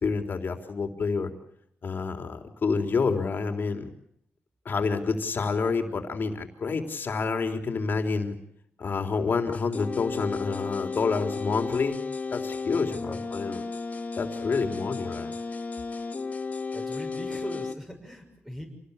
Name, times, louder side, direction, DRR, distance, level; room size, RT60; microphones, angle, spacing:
voice 1, 0.0-1.3 1.8-3.9 4.7-8.4 8.8-12.0 12.3-13.6 14.2-15.3, left 4 dB, 50° left, 5 dB, 3.7 m, -28 dB
sound 1, 9.4-17.7, left 4 dB, 35° left, 2.5 m, -34 dB
voice 2, 12.7-13.3 14.4-14.7 16.7-18.7, equal, 5° right, 1 dB, 6.5 m, -40 dB
28.0 x 19.5 x 8.3 m, 0.72 s
cardioid pair, 100°, 4 cm